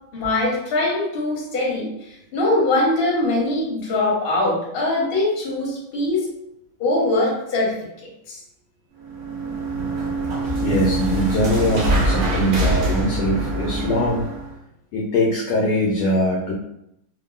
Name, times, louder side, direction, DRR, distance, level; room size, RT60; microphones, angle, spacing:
voice 1, 0.1-1.9 2.3-6.3 6.8-7.7 8.3-8.4, left 2 dB, 60° left, -4 dB, 0.6 m, -22 dB
sound 1, 9.0-14.5, right 2 dB, 80° right, 0.7 m, -24 dB
voice 2, 10.6-14.2 14.9-16.5, left 1 dB, 80° left, -3 dB, 0.9 m, -21 dB
3.5 x 2.0 x 2.3 m, 0.80 s
omnidirectional pair, 2.3 m